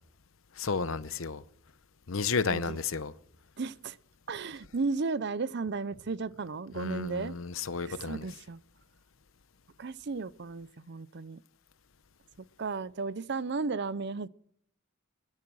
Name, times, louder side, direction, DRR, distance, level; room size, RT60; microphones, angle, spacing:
voice 1, 0.6-1.4 2.1-3.1 6.8-8.3, left 5 dB, 75° left, 0.8 m, -32 dB
voice 2, 3.6-4.0 4.3-7.3 7.8-8.6 9.8-11.4 12.6-14.3, right 4 dB, 55° right, 0.6 m, -34 dB
23.0 x 9.8 x 6.3 m
head